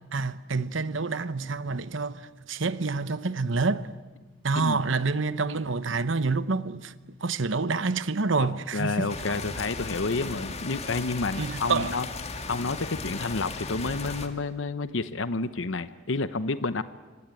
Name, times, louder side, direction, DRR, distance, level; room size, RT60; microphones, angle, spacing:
voice 1, 0.1-2.2 2.5-3.9 4.4-6.9 7.2-9.4 11.4-11.9, right 4 dB, 70° right, 1.0 m, -27 dB
voice 2, 8.4-12.1 12.5-16.8, left 3 dB, 70° left, 0.9 m, -30 dB
sound 1, 9.1-14.3, left 3 dB, 35° left, 2.2 m, -36 dB
26.0 x 24.5 x 9.1 m
head